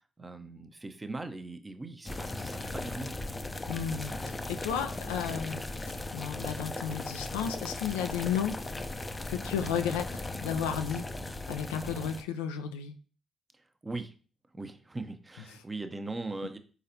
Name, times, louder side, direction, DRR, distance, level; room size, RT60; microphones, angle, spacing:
voice 1, 0.2-3.2 13.8-14.1 14.5-16.6, right 2 dB, 25° right, 8 dB, 0.6 m, -39 dB
sound 1, 2.1-12.2, left 2 dB, 30° left, 0.5 m, -37 dB
voice 2, 3.7-5.6 5.9-8.6 9.3-11.1 11.5-12.9, left 8 dB, 85° left, 8 dB, 0.3 m, -33 dB
4.0 x 3.9 x 2.7 m, 0.38 s
hypercardioid pair, 45°, 0 cm